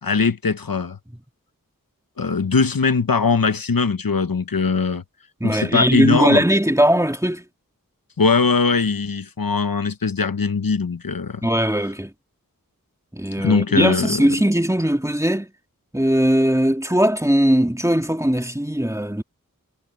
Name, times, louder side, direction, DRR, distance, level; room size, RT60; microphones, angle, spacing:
voice 1, 0.0-1.0 2.2-5.0 5.4-6.4 8.2-11.4 13.4-14.2, left 4 dB, 85° left, 1.0 m, -20 dB
voice 2, 5.4-7.4 11.4-12.1 13.1-15.5 15.9-19.2, equal, 10° right, 2.5 m, -19 dB
wide cardioid pair, 45°, 34 cm